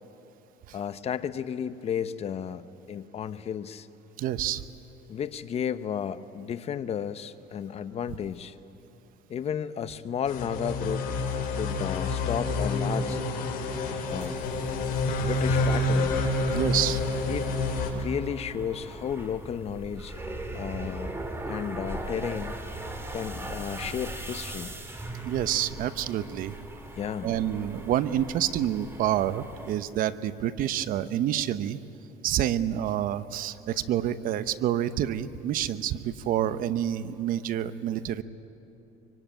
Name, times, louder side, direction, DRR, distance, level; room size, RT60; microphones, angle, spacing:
voice 1, 0.7-3.9 5.1-8.6 9.3-11.1 11.5-13.2 14.1-14.4 15.2-16.2 17.3-17.5 17.9-21.2 21.5-22.6 23.1-24.7 27.0-27.3, left 8 dB, 40° left, 12 dB, 0.9 m, -33 dB
voice 2, 4.2-4.6 16.5-17.0 25.2-26.6 27.2-31.8 32.2-38.2, right 11 dB, 60° right, 13 dB, 0.9 m, -28 dB
sound 1, 10.3-17.9, left 2 dB, 65° left, 4.9 m, -28 dB
sound 2, 14.1-29.7, right 1 dB, 15° right, 3.1 m, -39 dB
25.5 x 24.5 x 9.1 m, 3.0 s
cardioid pair, 125°, 16 cm